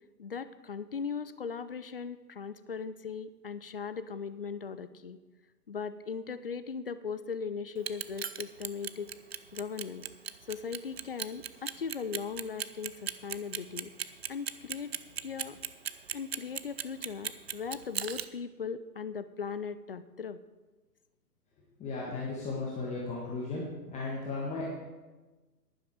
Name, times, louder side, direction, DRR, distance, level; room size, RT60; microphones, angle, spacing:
voice 1, 0.2-5.2 5.7-9.1 9.5-10.0 10.5-13.9 14.3-14.9 15.2-15.6 16.1-20.4, left 6 dB, 40° left, 13 dB, 0.4 m, -38 dB
Clock, 7.8-18.3, right 8 dB, 40° right, 0.5 m, -36 dB
voice 2, 21.8-23.6 23.9-24.6, left 3 dB, 15° left, -5 dB, 1.6 m, -35 dB
11.0 x 10.5 x 4.9 m, 1.2 s
figure-of-eight pair, 125°, 49 cm